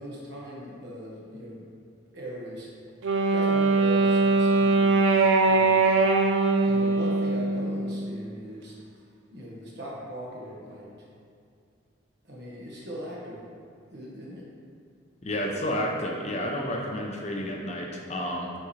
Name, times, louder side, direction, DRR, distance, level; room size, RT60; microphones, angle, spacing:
voice 1, 0.0-1.7 2.1-2.7 3.3-5.0 5.4-5.9 6.5-8.8 9.3-11.1 12.2-13.5 13.9-14.4, equal, 55° right, -5 dB, 1.4 m, -40 dB
Wind instrument woodwind instrument, 3.0-8.1, right 3 dB, 75° right, 0.5 m, -22 dB
voice 2, 15.2-18.5, equal, 35° left, 0 dB, 0.6 m, -30 dB
8.4 x 4.3 x 3.3 m, 2.4 s
head